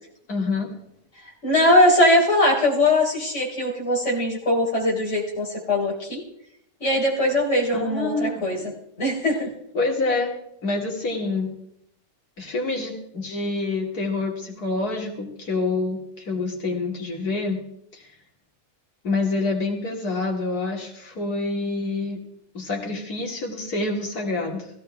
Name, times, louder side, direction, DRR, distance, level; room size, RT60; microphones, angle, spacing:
voice 1, 0.3-0.7 7.7-8.7 9.7-10.3 10.6-11.5 12.4-17.6 17.9-18.1 19.0-22.2 22.5-24.7, left 3 dB, 80° left, 0 dB, 3.1 m, -27 dB
voice 2, 1.4-6.2 6.8-8.6 9.0-9.5, left 1 dB, 50° left, -3 dB, 4.3 m, -20 dB
16.0 x 16.0 x 3.4 m, 0.74 s
omnidirectional pair, 1.6 m